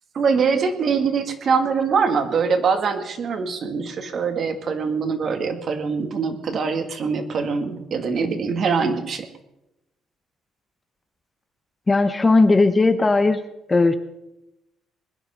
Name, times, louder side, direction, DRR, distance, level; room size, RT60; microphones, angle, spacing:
voice 1, 0.1-9.3, right 5 dB, 50° right, 7 dB, 1.8 m, -23 dB
voice 2, 11.9-13.4 13.7-14.0, left 3 dB, 20° left, 10 dB, 0.9 m, -17 dB
21.0 x 10.5 x 5.6 m, 0.91 s
cardioid pair, 120°, 0 cm